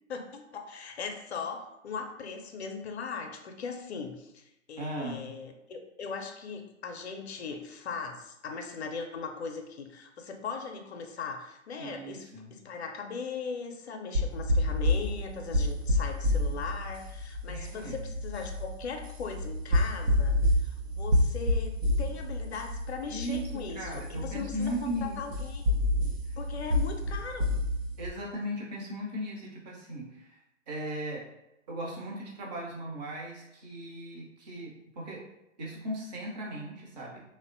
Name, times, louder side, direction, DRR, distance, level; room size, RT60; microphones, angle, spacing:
voice 1, 0.1-25.7 26.4-27.5, left 5 dB, 55° left, 5 dB, 0.5 m, -39 dB
voice 2, 4.8-5.3 11.8-12.5 17.5-18.1 23.1-23.5 23.7-25.2 28.0-30.4 30.7-31.2 31.7-35.2 35.6-37.2, equal, 35° right, -3 dB, 0.7 m, -37 dB
sound 1, 14.1-28.1, left 1 dB, 75° right, 0.7 m, -29 dB
3.1 x 2.1 x 2.5 m, 0.88 s
figure-of-eight pair, 125°, 39 cm